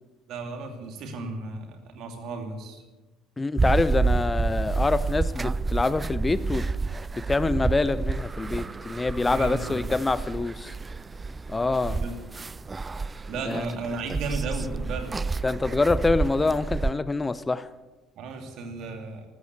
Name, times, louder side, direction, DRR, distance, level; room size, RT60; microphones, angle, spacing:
voice 1, 0.3-2.8 9.2-9.9 11.9-12.1 13.3-15.1 18.2-19.3, right 3 dB, 55° right, 5 dB, 2.7 m, -34 dB
voice 2, 3.4-6.6 7.2-10.7 11.5-12.0 13.4-13.6 15.4-17.7, left 3 dB, 20° left, 16 dB, 0.6 m, -25 dB
sound 1, 3.6-16.9, right 4 dB, 25° right, 0.4 m, -29 dB
14.0 x 13.5 x 7.0 m, 1.2 s
figure-of-eight pair, 55°, 0 cm